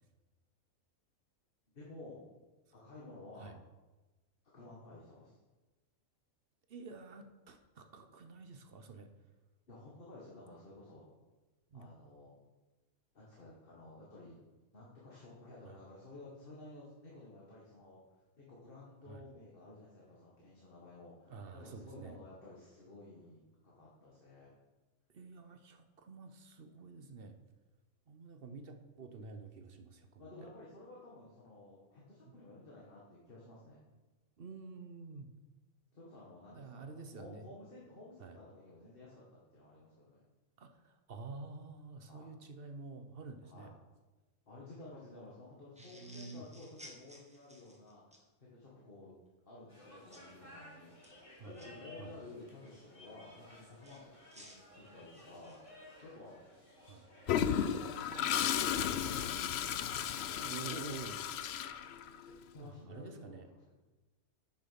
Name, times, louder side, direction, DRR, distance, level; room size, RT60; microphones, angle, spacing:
voice 1, 1.7-2.2 2.7-3.6 4.5-5.4 9.7-11.1 11.7-12.4 13.1-14.4 14.7-18.0 18.4-24.5 30.2-33.8 35.9-40.2 42.0-42.3 43.4-43.7 44.5-49.2 49.5-56.4 57.3-59.9 62.2-63.7, left 2 dB, 40° left, -5 dB, 1.9 m, -54 dB
voice 2, 6.7-9.1 11.7-11.9 15.6-15.8 19.0-19.2 21.3-22.2 25.1-27.3 28.1-30.3 32.2-32.3 34.4-35.3 36.5-37.5 38.2-38.4 40.6-43.7 45.9-46.4 51.4-51.6 52.0-52.1 56.9-57.1 60.4-61.2 62.6-63.5, right 4 dB, 45° right, 7 dB, 0.9 m, -49 dB
sound 1, 45.8-48.2 50.1-50.3 50.9-51.7 53.8-55.7, equal, 5° right, 1.3 m, -56 dB
sound 2, 49.7-62.0, left 1 dB, 20° left, 2.9 m, -57 dB
Toilet flush, 57.3-62.3, left 9 dB, 65° left, 0.6 m, -34 dB
9.5 x 6.6 x 5.8 m, 1.2 s
omnidirectional pair, 1.5 m